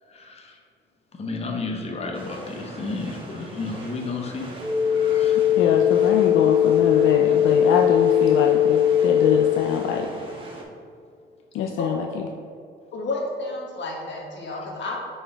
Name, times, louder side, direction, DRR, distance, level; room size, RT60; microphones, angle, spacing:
voice 1, 0.1-0.6 1.1-4.5 4.9-5.4 14.5-14.9, left 3 dB, 30° left, 2 dB, 0.7 m, -32 dB
sound 1, 2.1-10.6, right 1 dB, 25° right, 1.4 m, -40 dB
sound 2, 4.6-9.6, left 10 dB, 5° right, 0.4 m, -19 dB
voice 2, 5.6-10.1 11.5-12.2, left 6 dB, 80° left, 2 dB, 0.4 m, -24 dB
voice 3, 12.9-15.0, left 2 dB, 65° left, -1 dB, 1.4 m, -31 dB
7.0 x 4.3 x 3.4 m, 2.4 s
cardioid pair, 90°, 20 cm